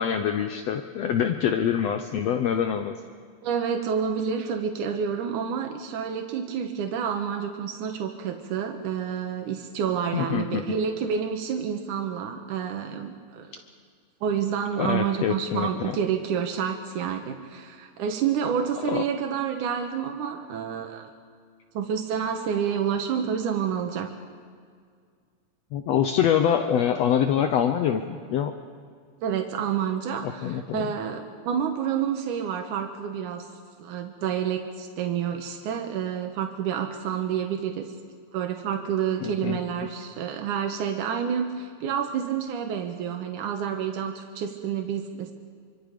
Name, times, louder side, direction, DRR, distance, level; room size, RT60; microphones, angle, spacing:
voice 1, 0.0-2.9 10.1-10.6 14.8-16.0 18.8-19.0 25.7-28.5 30.2-30.9 39.2-39.6, left 9 dB, 70° left, 7 dB, 1.8 m, -25 dB
voice 2, 3.4-13.5 14.2-21.1 21.7-24.1 29.2-33.5 33.8-37.9 38.3-45.3, right 7 dB, 90° right, 4 dB, 2.7 m, -29 dB
27.0 x 24.5 x 5.2 m, 2.1 s
omnidirectional pair, 3.4 m